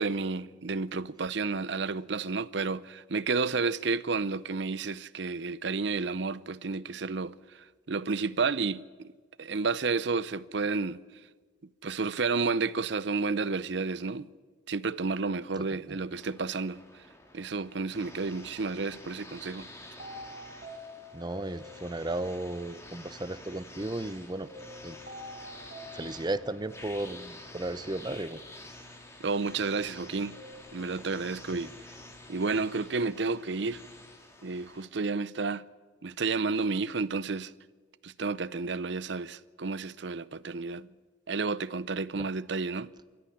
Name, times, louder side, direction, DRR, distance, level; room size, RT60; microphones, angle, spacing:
voice 1, 0.0-9.1 9.4-11.0 11.8-14.3 14.7-16.8 17.3-19.7 29.2-30.4 30.7-31.7 32.3-33.8 34.4-35.6 36.0-37.5 38.0-40.9 41.3-42.9, right 4 dB, 60° right, 0.6 m, -31 dB
sound 1, 16.1-34.9, left 1 dB, 15° left, 2.3 m, -49 dB
sound 2, 20.0-22.3 24.5-26.8 30.3-30.5, left 1 dB, 45° right, 4.6 m, -46 dB
voice 2, 21.1-24.5 24.8-25.0 25.9-28.4 31.5-31.6 42.2-42.3, right 2 dB, 20° right, 0.8 m, -35 dB
27.0 x 14.0 x 10.0 m
head